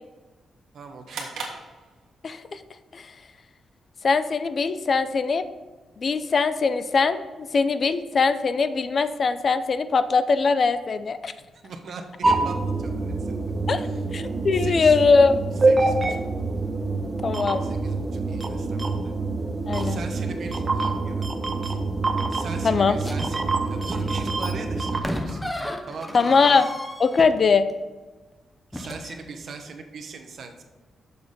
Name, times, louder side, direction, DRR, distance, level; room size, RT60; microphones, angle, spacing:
voice 1, 0.7-1.4 11.5-13.3 13.8-14.0 14.5-15.1 15.6-16.2 17.6-19.1 19.8-21.8 22.3-25.4 25.9-26.7 28.7-30.6, right 4 dB, 55° right, 5 dB, 1.0 m, -40 dB
sound 1, 1.1-2.5, right 4 dB, 85° right, 1.6 m, -37 dB
voice 2, 2.2-2.6 2.9-3.1 4.0-5.5 6.0-11.3 13.7-13.8 14.1-15.4 17.2-17.6 19.7-20.0 22.6-22.9 26.1-26.7 27.0-27.7, left 4 dB, 40° left, 12 dB, 0.4 m, -21 dB
sound 2, 12.2-25.0, right 3 dB, 20° right, 0.8 m, -26 dB
sound 3, 19.7-20.2 23.0-27.7 28.7-29.2, left 1 dB, 5° left, 0.7 m, -35 dB
6.9 x 6.4 x 5.3 m, 1.2 s
wide cardioid pair, 140°, 0 cm